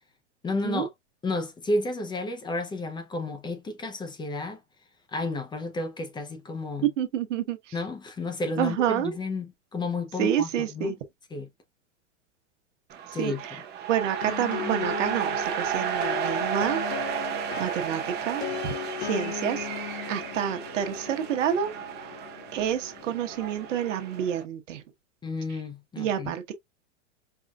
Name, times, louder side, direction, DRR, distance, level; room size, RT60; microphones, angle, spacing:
voice 1, 0.4-0.9 1.2-4.6 5.1-6.9 7.7-10.9 11.3-11.5 13.1-13.4 25.2-26.3, left 2 dB, 10° left, 0.6 m, -32 dB
voice 2, 7.0-7.7 8.6-9.1 10.2-11.0 13.2-13.6 13.9-16.8 17.6-18.4 19.0-19.7 20.1-21.7 22.5-24.8 26.0-26.5, right 9 dB, 75° right, 1.1 m, -28 dB
sound 1, 12.9-24.4, right 8 dB, 25° right, 0.8 m, -33 dB
sound 2, 14.2-23.8, left 8 dB, 65° left, 0.9 m, -38 dB
4.7 x 2.5 x 2.3 m
hypercardioid pair, 130°, 37 cm